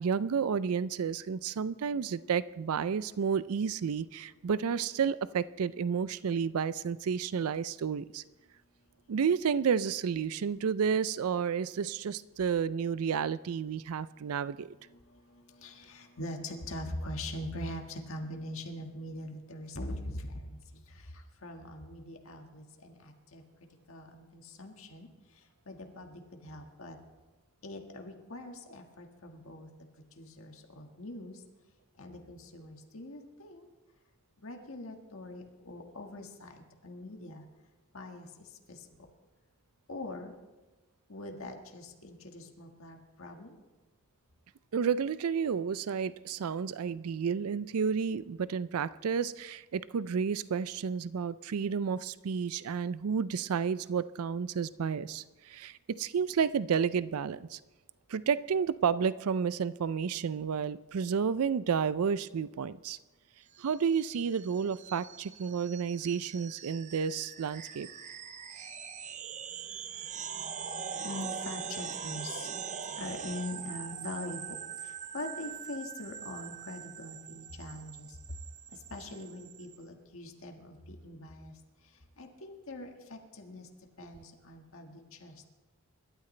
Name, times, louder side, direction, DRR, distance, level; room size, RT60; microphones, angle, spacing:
voice 1, 0.0-8.2 9.1-14.7 44.7-57.6 58.1-63.0 63.6-67.9, right 6 dB, 80° right, 17 dB, 0.4 m, -31 dB
voice 2, 15.6-21.0 21.4-23.4 23.9-25.1 25.7-27.0 27.6-29.7 30.2-31.4 32.0-33.7 34.4-37.4 37.9-38.3 38.7-38.8 39.9-40.3 41.1-43.5 71.0-72.5 73.0-74.6 74.8-78.1 78.9-81.5 82.2-83.7 84.0-85.5, left 1 dB, 65° left, 3 dB, 1.7 m, -42 dB
sound 1, 63.5-79.8, right 7 dB, 30° right, 0.6 m, -42 dB
26.5 x 12.5 x 3.3 m, 1.2 s
head